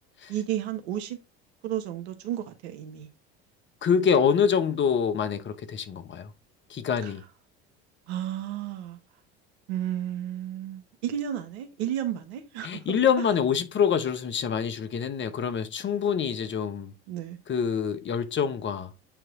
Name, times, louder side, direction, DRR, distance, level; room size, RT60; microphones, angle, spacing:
voice 1, 0.3-1.2 1.6-3.1 7.0-7.1 8.1-9.0 9.7-13.0 17.1-17.4, right 11 dB, 80° right, 1.4 m, -32 dB
voice 2, 3.8-6.3 6.7-7.2 12.6-16.9 17.5-18.9, left 7 dB, 35° left, 1.0 m, -26 dB
8.8 x 3.1 x 3.7 m
hypercardioid pair, 85°, 32 cm